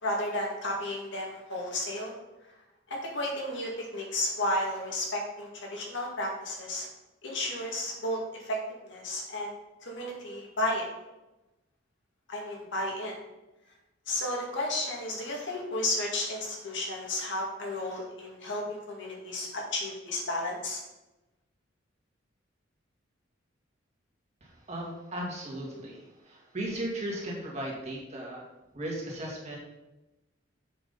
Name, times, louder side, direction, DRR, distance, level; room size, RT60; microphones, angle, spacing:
voice 1, 0.0-2.1 2.9-6.9 7.2-9.5 9.8-10.9 12.3-13.2 14.1-20.8, left 1 dB, 65° left, -1 dB, 2.0 m, -33 dB
voice 2, 24.4-28.4 28.7-29.6, right 1 dB, 35° right, -3 dB, 2.2 m, -36 dB
7.6 x 5.0 x 5.4 m, 1.0 s
head